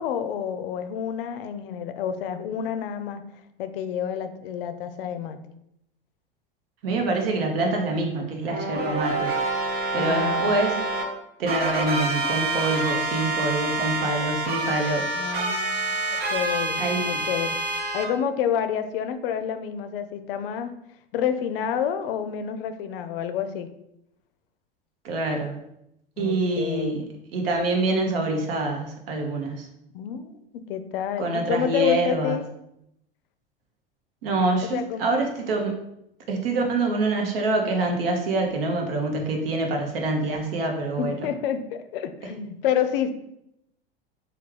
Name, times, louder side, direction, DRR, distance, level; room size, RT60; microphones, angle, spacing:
voice 1, 0.0-3.2 3.6-5.4 9.9-10.5 15.1-17.6 17.9-20.7 21.1-23.7 26.2-27.1 29.9-32.5 34.6-35.0 41.0-43.1, left 8 dB, 70° left, 9 dB, 0.5 m, -29 dB
voice 2, 6.8-9.3 9.9-10.7 11.4-15.1 16.8-17.2 25.0-25.5 26.2-27.0 27.3-29.7 31.2-32.4 34.2-35.7 36.3-41.1, right 2 dB, 75° right, 2 dB, 0.8 m, -25 dB
sound 1, 8.5-11.0 11.5-18.0, right 2 dB, 35° right, 0.7 m, -27 dB
3.3 x 2.3 x 3.2 m, 0.80 s
hypercardioid pair, 95°, 30 cm